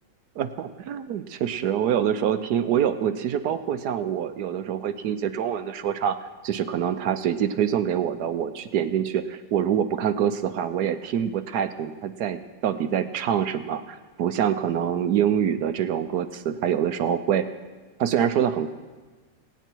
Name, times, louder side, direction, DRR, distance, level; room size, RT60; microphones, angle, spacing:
voice 1, 0.4-6.2 6.4-17.5 18.0-18.7, right 9 dB, 70° right, 10 dB, 1.2 m, -25 dB
23.5 x 9.2 x 4.5 m, 1.3 s
omnidirectional pair, 1.9 m